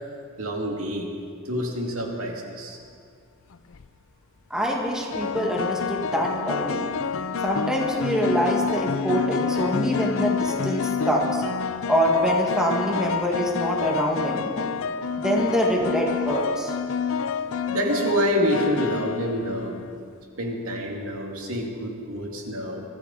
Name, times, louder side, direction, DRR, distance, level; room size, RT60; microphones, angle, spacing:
voice 1, 0.4-1.1 1.5-2.8 17.7-19.8 20.4-22.8, equal, 80° right, 1 dB, 2.3 m, -27 dB
sound 1, 3.5-3.9 5.1-20.0, left 6 dB, 70° left, 0.6 m, -28 dB
voice 2, 4.5-6.9 7.4-11.4 11.9-14.7 15.2-16.7, equal, 5° right, -2 dB, 1.8 m, -25 dB
24.0 x 13.5 x 4.2 m, 2.2 s
head